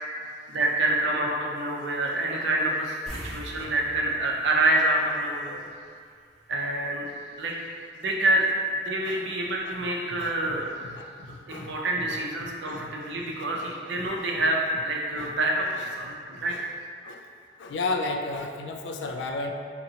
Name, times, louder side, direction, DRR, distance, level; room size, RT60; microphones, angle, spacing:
voice 1, 0.5-3.0 3.2-5.7 6.5-7.1 7.4-7.5 7.9-8.5 8.7-10.7 11.5-16.6, right 1 dB, 70° right, -1 dB, 0.5 m, -27 dB
sound 1, 3.1-5.8 6.1-6.3 9.2-9.3 9.6-9.7, equal, 5° left, 0.7 m, -42 dB
voice 2, 10.1-13.5 13.9-14.1 15.2-15.3 16.3-16.6 17.0-17.2 17.6-19.5, left 3 dB, 70° left, 3 dB, 0.3 m, -35 dB
3.9 x 2.8 x 2.8 m, 2.1 s
head